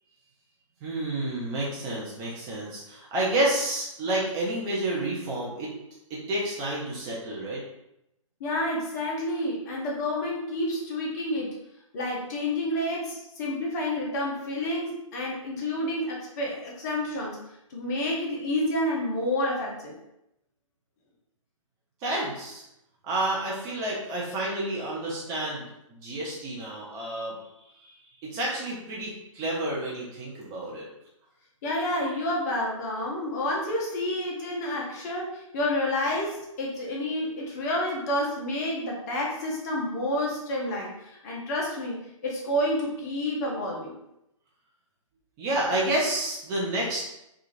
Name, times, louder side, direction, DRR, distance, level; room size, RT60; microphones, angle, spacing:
voice 1, 0.8-5.7 6.1-7.6 22.0-22.6 23.0-27.4 27.8-27.9 28.2-30.8 45.4-47.0, right 1 dB, 20° right, -5 dB, 0.5 m, -30 dB
voice 2, 8.4-11.5 11.9-17.4 17.7-19.9 31.6-43.9, left 1 dB, 30° left, -2 dB, 0.6 m, -29 dB
2.9 x 2.3 x 2.6 m, 0.84 s
figure-of-eight pair, 125°, 17 cm